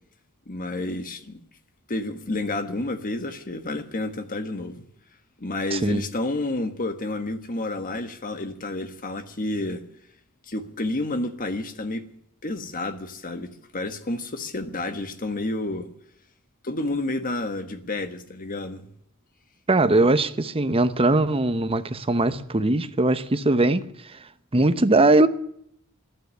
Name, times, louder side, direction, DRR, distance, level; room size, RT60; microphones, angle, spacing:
voice 1, 0.5-1.4 1.9-4.8 5.4-9.8 10.5-12.0 12.4-15.9 16.6-18.9, left 2 dB, 40° left, 1.4 m, -30 dB
voice 2, 5.7-6.0 19.7-23.8 24.5-25.3, right 2 dB, 25° right, 0.9 m, -20 dB
13.0 x 9.9 x 9.5 m
head